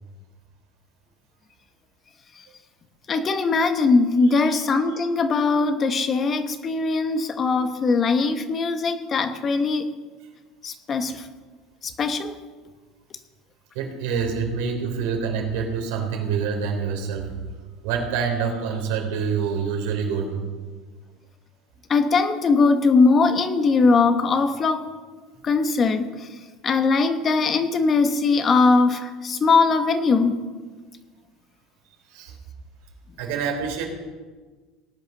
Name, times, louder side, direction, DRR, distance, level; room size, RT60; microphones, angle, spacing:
voice 1, 3.1-9.9 10.6-11.3 11.8-12.3 21.9-24.8 25.4-26.3 26.6-30.4, left 4 dB, 30° left, 9 dB, 1.2 m, -20 dB
voice 2, 13.7-17.3 17.8-20.4 32.1-32.3 33.2-33.8, right 6 dB, 80° right, 2 dB, 3.8 m, -26 dB
18.5 x 9.0 x 6.7 m, 1.4 s
supercardioid pair, 125°, 0 cm